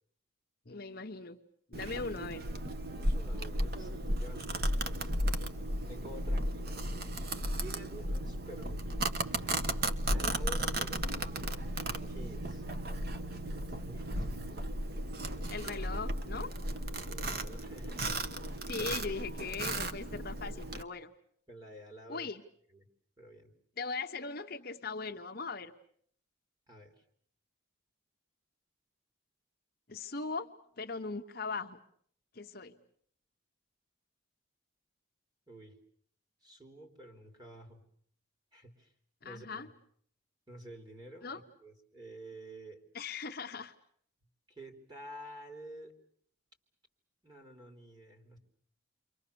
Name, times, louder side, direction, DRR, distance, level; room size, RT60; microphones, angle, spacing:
voice 1, 0.7-1.4 1.7-2.5 15.4-16.5 18.6-21.1 22.1-22.4 23.8-25.7 29.9-30.5 30.8-31.8 32.3-32.8 39.2-39.7 41.2-41.4 42.9-43.7, left 4 dB, 45° left, 5 dB, 1.1 m, -39 dB
Domestic sounds home sounds, 1.7-20.8, right 1 dB, 50° right, 1.3 m, -35 dB
voice 2, 2.9-5.1 5.9-7.0 7.6-9.4 9.9-11.7 12.1-12.7 13.8-14.4 17.1-18.9 21.5-22.3 22.7-22.9 23.2-23.5 26.7-27.0 35.5-35.8 36.4-37.8 38.5-38.9 39.2-39.7 40.5-42.8 44.5-45.9 47.2-48.4, right 1 dB, 20° right, 4 dB, 3.6 m, -50 dB
29.5 x 24.0 x 7.0 m, 0.64 s
head